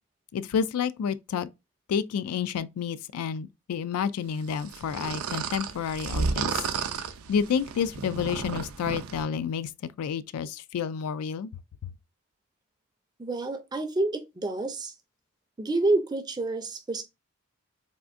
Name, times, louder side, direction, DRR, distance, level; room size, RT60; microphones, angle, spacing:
voice 1, 0.3-1.5 1.9-6.7 7.3-11.5, left 7 dB, 85° left, 0.3 m, -30 dB
sound 1, 4.6-9.2, right 5 dB, 75° right, 0.4 m, -32 dB
voice 2, 13.2-14.9 15.6-17.0, right 2 dB, 20° right, 0.4 m, -28 dB
3.6 x 2.5 x 2.4 m
head